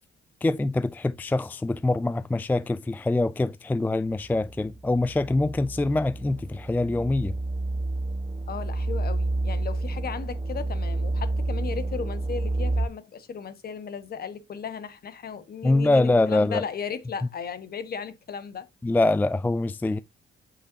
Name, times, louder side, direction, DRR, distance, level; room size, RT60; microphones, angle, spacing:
voice 1, 0.4-7.4 15.6-16.6 18.8-20.0, left 2 dB, 10° left, 0.3 m, -24 dB
sound 1, 4.3-12.9, right 2 dB, 25° right, 1.2 m, -29 dB
voice 2, 8.5-18.7, left 6 dB, 50° left, 1.3 m, -36 dB
8.2 x 5.5 x 2.7 m
cardioid pair, 90°, 20 cm